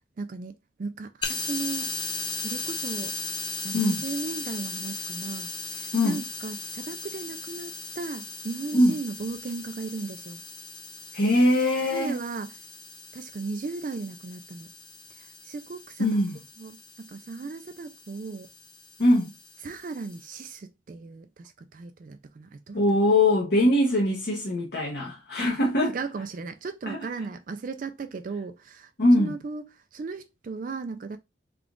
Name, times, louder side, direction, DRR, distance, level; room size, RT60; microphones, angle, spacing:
voice 1, 0.2-0.5 0.8-1.9 2.4-3.1 3.6-10.4 11.9-12.6 13.1-14.7 15.1-16.2 16.6-18.5 19.6-22.8 25.9-28.9 29.2-29.7 29.9-31.2, right 4 dB, 45° right, 0.3 m, -36 dB
sound 1, 1.2-20.6, left 4 dB, 25° left, 0.5 m, -38 dB
voice 2, 11.1-12.2 16.0-16.4 19.0-19.3 22.7-26.0 26.9-27.1 29.0-29.3, left 1 dB, 60° left, 0.9 m, -22 dB
3.6 x 2.3 x 3.6 m
head